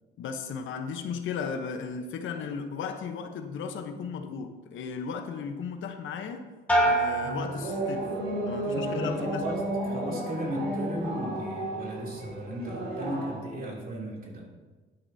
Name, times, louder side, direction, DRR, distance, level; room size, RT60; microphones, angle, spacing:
voice 1, 0.2-6.5 6.8-8.1 8.5-9.4, left 6 dB, 75° left, 0.9 m, -35 dB
sound 1, 6.7-8.4 8.8-9.4, right 1 dB, 5° left, 2.3 m, -28 dB
sound 2, 7.2-13.4, right 1 dB, 90° right, 3.4 m, -33 dB
voice 2, 8.7-14.5, right 1 dB, 45° right, 2.9 m, -35 dB
11.0 x 9.7 x 2.8 m
cardioid pair, 90°, 20 cm